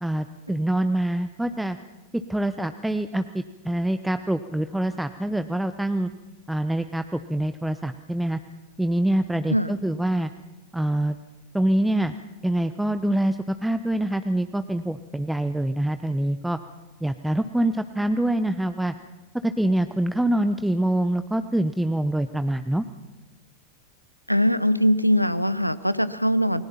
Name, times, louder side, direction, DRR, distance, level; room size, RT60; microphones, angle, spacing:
voice 1, 0.0-1.8 2.3-6.1 6.5-8.4 8.8-10.3 10.7-11.2 11.5-12.1 12.4-16.6 17.0-18.9 19.4-22.8, right 1 dB, 5° right, 10 dB, 0.9 m, -25 dB
voice 2, 24.3-26.7, equal, 90° left, 16 dB, 0.9 m, -22 dB
28.5 x 21.0 x 5.8 m, 1.1 s
figure-of-eight pair, 90°, 0 cm